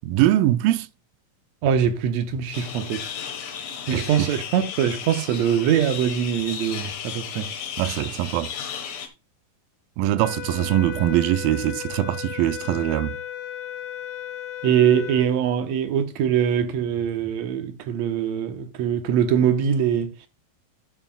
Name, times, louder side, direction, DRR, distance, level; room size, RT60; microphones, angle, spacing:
voice 1, 0.1-0.9 3.9-4.0 7.8-8.5 10.0-13.1, right 14 dB, 85° right, 2.4 m, -22 dB
voice 2, 1.6-3.1 3.9-7.5 14.6-20.1, right 9 dB, 70° right, 1.9 m, -22 dB
sound 1, 2.5-9.1, left 8 dB, 65° left, 2.6 m, -34 dB
sound 2, 10.2-15.3, left 10 dB, 80° left, 2.5 m, -35 dB
12.5 x 7.6 x 2.3 m
omnidirectional pair, 4.0 m